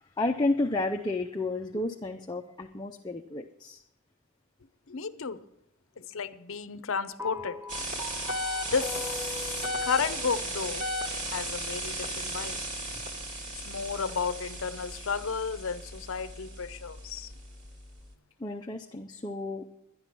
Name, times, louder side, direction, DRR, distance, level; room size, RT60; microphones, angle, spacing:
voice 1, 0.0-3.8 18.4-19.6, left 2 dB, 20° left, 2 dB, 0.5 m, -31 dB
voice 2, 4.9-5.4 6.0-7.6 8.7-10.8 11.3-12.6 13.7-17.3, left 5 dB, 60° left, 14 dB, 0.7 m, -33 dB
sound 1, 7.2-11.6, left 2 dB, 15° right, 0.9 m, -42 dB
sound 2, 7.7-18.1, equal, 35° right, 1.8 m, -36 dB
11.0 x 11.0 x 6.0 m, 0.78 s
head